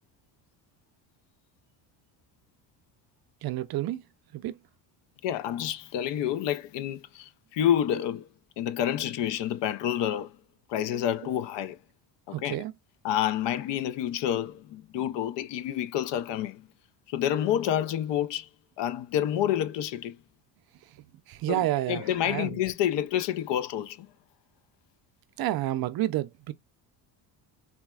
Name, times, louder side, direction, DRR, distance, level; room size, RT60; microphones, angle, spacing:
voice 1, 3.4-4.0 4.3-4.6 12.3-12.7 21.3-22.6 25.4-26.5, right 15 dB, 50° right, 0.5 m, -30 dB
voice 2, 5.2-8.3 8.6-10.4 10.7-11.8 12.3-12.6 13.0-16.7 17.1-18.5 18.8-20.2 21.5-24.1, left 11 dB, 60° left, 0.6 m, -28 dB
4.0 x 2.2 x 2.2 m
cardioid pair, 100°, 48 cm